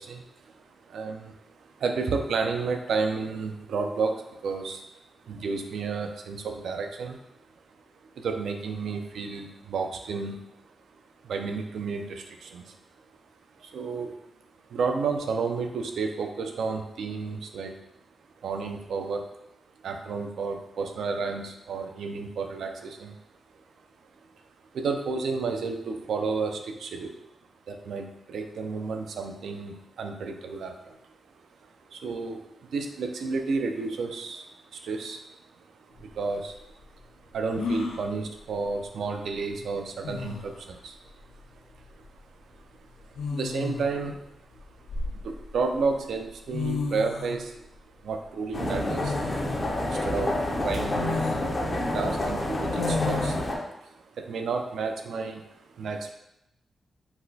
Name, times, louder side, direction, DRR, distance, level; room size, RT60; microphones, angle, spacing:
voice 1, 0.0-4.8 5.2-7.2 8.2-10.4 10.7-10.8 11.2-12.8 13.6-14.1 14.7-17.8 18.4-19.3 19.8-23.2 24.7-27.2 27.7-31.0 31.6-36.7 37.0-41.2 41.5-42.0 42.3-42.6 43.0-44.2 44.5-44.8 45.1-47.7 48.0-49.2 49.8-56.1, right 4 dB, 80° right, 4 dB, 0.3 m, -32 dB
sound 1, 36.0-36.1 37.6-38.1 39.6-39.7 40.0-40.5 41.8-42.1 43.1-43.9 44.6-45.6 46.3-46.4 46.5-47.4 49.0-49.6 50.1-50.2 50.9-51.4 52.8-53.4, left 4 dB, 85° left, 0.3 m, -32 dB
sound 2, 48.5-53.6, left 1 dB, 45° left, 0.6 m, -28 dB
3.9 x 2.2 x 2.6 m, 0.87 s
cardioid pair, 70°, 0 cm